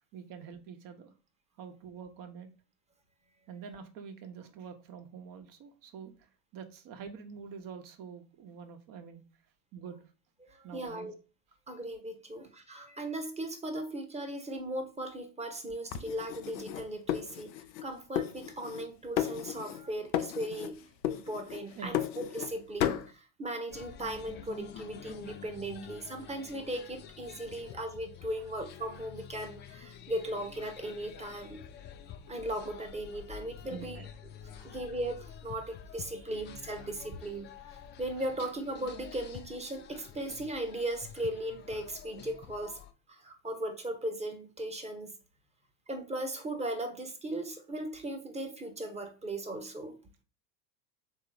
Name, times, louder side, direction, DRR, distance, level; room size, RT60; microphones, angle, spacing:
voice 1, 0.1-1.1 1.6-2.5 3.5-9.2 9.7-10.1 10.6-11.1 21.7-22.1 33.6-34.1 34.6-34.7, right 6 dB, 40° right, 1.0 m, -46 dB
voice 2, 10.5-11.1 11.7-17.5 17.8-20.8 21.0-31.7 32.3-34.0 34.6-37.5 38.0-42.8 43.1-45.1 45.9-50.0, right 1 dB, 15° right, 1.0 m, -37 dB
sound 1, 15.9-17.9 18.2-18.9 19.2-19.9 20.1-20.7 21.0-22.5 22.8-23.1, left 11 dB, 85° left, 0.6 m, -34 dB
sound 2, 23.7-42.9, left 8 dB, 25° left, 0.4 m, -49 dB
3.7 x 2.8 x 4.8 m
hypercardioid pair, 85°, 49 cm